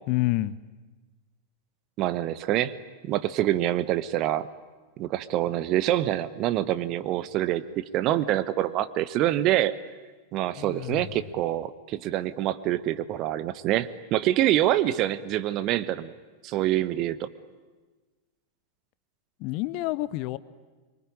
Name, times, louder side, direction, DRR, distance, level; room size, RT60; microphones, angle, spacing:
voice 1, 0.1-0.6 10.5-11.0 19.4-20.4, left 18 dB, 45° left, 17 dB, 0.8 m, -28 dB
voice 2, 2.0-2.7 3.0-4.5 5.0-9.7 10.3-16.1 16.4-17.3, right 13 dB, 40° right, 15 dB, 1.0 m, -26 dB
25.0 x 23.0 x 9.8 m, 1.3 s
figure-of-eight pair, 90°, 0 cm